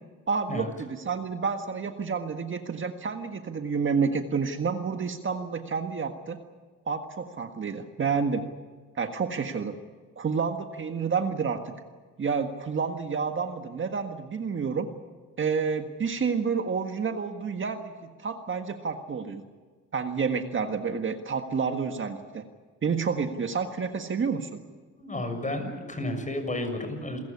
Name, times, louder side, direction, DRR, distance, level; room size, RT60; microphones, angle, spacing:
voice 1, 0.3-6.4 6.9-8.4 9.0-9.8 10.2-11.7 12.2-14.9 15.4-17.9 18.2-19.4 19.9-22.4 22.8-24.6, right 5 dB, 40° right, 6 dB, 1.7 m, -29 dB
voice 2, 25.0-27.2, left 1 dB, 25° left, 6 dB, 6.6 m, -32 dB
28.0 x 16.0 x 9.9 m, 1.5 s
cardioid pair, 90°, 30 cm